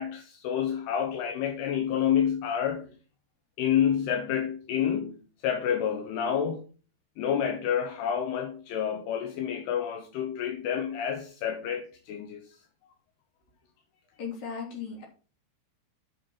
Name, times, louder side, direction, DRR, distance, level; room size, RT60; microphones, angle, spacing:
voice 1, 0.0-2.9 3.6-5.2 5.4-6.6 7.2-12.6, left 9 dB, 80° left, 3.0 m, -29 dB
voice 2, 14.2-15.1, left 6 dB, 50° left, 4.2 m, -36 dB
8.9 x 6.2 x 5.7 m
omnidirectional pair, 4.8 m